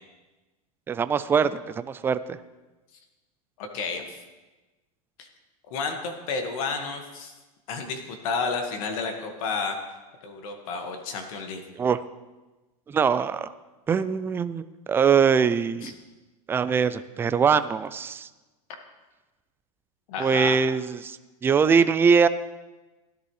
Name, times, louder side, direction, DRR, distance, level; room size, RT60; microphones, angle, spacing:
voice 1, 0.9-2.2 11.8-12.0 12.9-13.5 13.9-14.6 14.9-15.9 16.5-18.3 20.2-21.2 21.4-22.3, right 6 dB, 10° right, 13 dB, 0.4 m, -22 dB
voice 2, 3.6-4.2 5.2-5.3 5.7-7.3 7.7-9.8 10.2-11.6 15.8-15.9 20.1-20.6, left 4 dB, 65° left, 4 dB, 1.8 m, -31 dB
16.5 x 10.5 x 3.2 m, 1.2 s
supercardioid pair, 135°, 19 cm